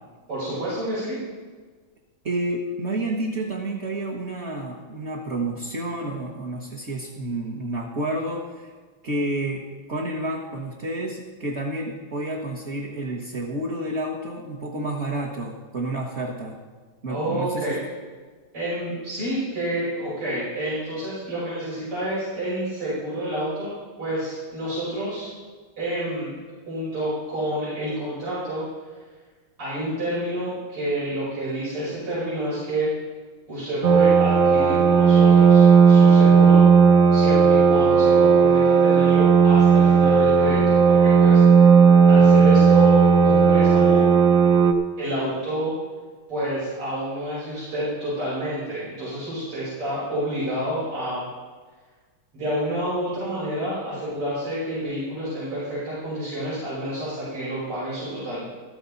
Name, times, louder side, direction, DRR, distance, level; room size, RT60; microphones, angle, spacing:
voice 1, 0.3-1.2 17.1-17.8 18.5-23.7 24.0-25.3 25.8-26.3 26.7-28.6 29.6-32.9 33.5-36.7 37.1-41.4 42.1-44.0 45.0-45.7 46.3-51.2 52.3-58.4, right 1 dB, 85° right, -11 dB, 6.4 m, -29 dB
voice 2, 2.2-8.7 9.0-16.6 17.0-17.8, right 1 dB, 35° right, -3 dB, 1.4 m, -30 dB
sound 1, 33.8-44.7, right 6 dB, 55° right, 1.0 m, -15 dB
14.0 x 13.0 x 4.0 m, 1.4 s
omnidirectional pair, 2.4 m